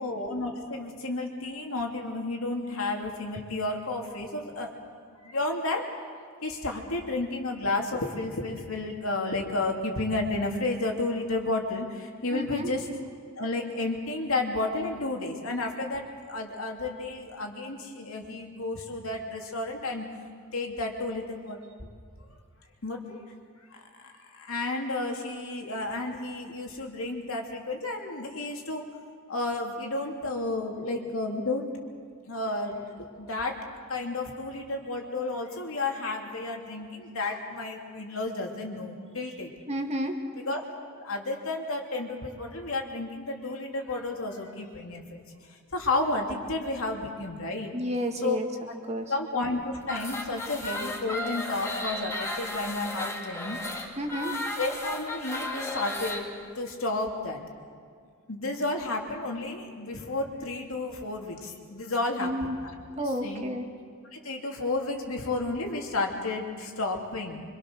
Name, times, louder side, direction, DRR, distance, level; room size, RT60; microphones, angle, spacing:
voice 1, 0.0-5.9 6.4-12.9 13.4-20.1 20.5-21.6 22.3-22.4 22.8-23.2 23.7-28.8 29.3-31.7 32.2-33.6 33.9-39.5 40.5-40.6 41.0-45.2 45.5-47.8 48.2-48.4 49.1-53.6 54.6-56.3 56.5-57.4 58.3-62.8 63.2-63.4 64.1-67.4, left 2 dB, 70° left, 1 dB, 2.9 m, -32 dB
voice 2, 12.3-12.7 39.7-40.2 47.7-48.5 48.8-49.1 54.0-54.4 62.2-62.6 63.0-63.7, equal, 30° right, 4 dB, 1.9 m, -31 dB
sound 1, 49.8-56.2, left 1 dB, 15° left, 2.6 m, -34 dB
25.0 x 25.0 x 6.5 m, 2.1 s
head